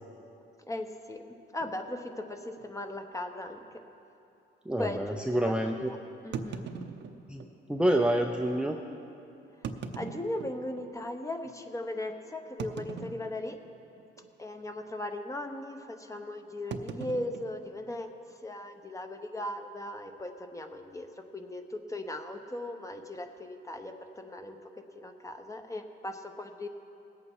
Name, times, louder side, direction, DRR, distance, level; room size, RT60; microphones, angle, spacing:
voice 1, 0.7-1.2 1.5-3.6 4.8-6.0 6.2-6.7 9.9-13.6 14.4-18.1 18.4-21.1 21.3-24.7 24.9-26.7, left 1 dB, 15° left, 6 dB, 1.0 m, -38 dB
sound 1, 1.6-1.8 2.5-2.6 2.9-3.0 3.6-3.7 6.3-7.5 8.4-8.5 9.5-10.9 11.4-11.5 12.6-13.7 14.0-14.3 14.6-14.9 16.7-18.3, right 5 dB, 65° right, 0.7 m, -41 dB
voice 2, 4.7-5.9 7.3-7.4 7.7-8.8, right 1 dB, 5° right, 2 dB, 0.6 m, -27 dB
19.0 x 8.5 x 4.8 m, 2.7 s
cardioid pair, 90°, 20 cm